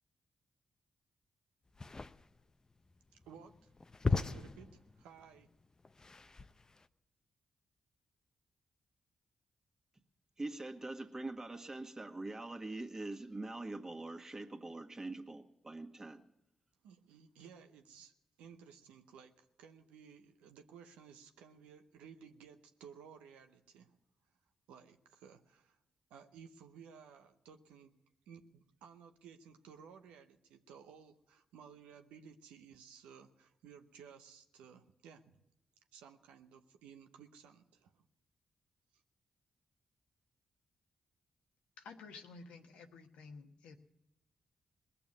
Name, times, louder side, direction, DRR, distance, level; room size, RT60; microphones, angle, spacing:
sound 1, 1.7-6.9, left 3 dB, 35° left, 0.6 m, -39 dB
voice 1, 3.1-3.7 4.1-5.5 16.8-18.1 18.4-24.0 24.7-25.8 26.1-28.0 28.3-35.4 35.9-38.0, right 7 dB, 85° right, 6 dB, 0.8 m, -57 dB
voice 2, 10.4-16.2, right 2 dB, 30° right, 3 dB, 1.8 m, -43 dB
voice 3, 41.8-43.8, left 4 dB, 80° left, 4 dB, 1.1 m, -52 dB
20.0 x 6.9 x 9.4 m, 0.89 s
hypercardioid pair, 40°, 2 cm